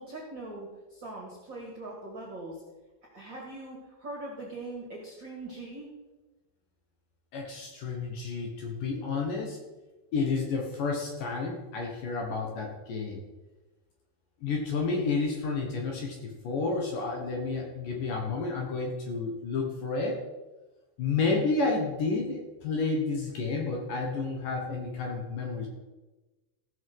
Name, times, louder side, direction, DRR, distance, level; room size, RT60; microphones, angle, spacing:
voice 1, 0.0-2.6 3.1-5.9, right 2 dB, 35° right, -2 dB, 2.0 m, -41 dB
voice 2, 7.3-9.6 10.1-13.2 14.4-20.2 21.0-25.7, left 4 dB, 60° left, 1 dB, 2.6 m, -30 dB
16.0 x 6.3 x 5.5 m, 1.1 s
omnidirectional pair, 4.9 m